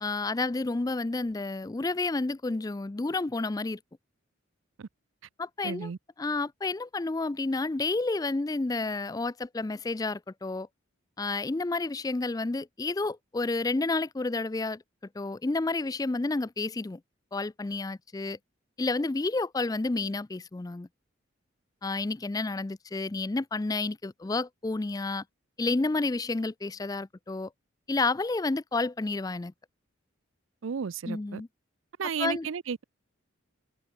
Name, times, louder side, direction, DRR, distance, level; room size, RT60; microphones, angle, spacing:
voice 1, 0.0-3.8 5.4-5.9 6.2-10.7 11.2-14.8 15.2-17.0 17.3-18.4 18.8-20.9 21.8-25.2 25.6-27.5 27.9-29.5 31.1-31.5 32.2-32.5, left 3 dB, 20° left, 0.3 m, -30 dB
voice 2, 5.6-6.0 30.6-31.4 32.0-32.8, right 6 dB, 75° right, 0.5 m, -33 dB
head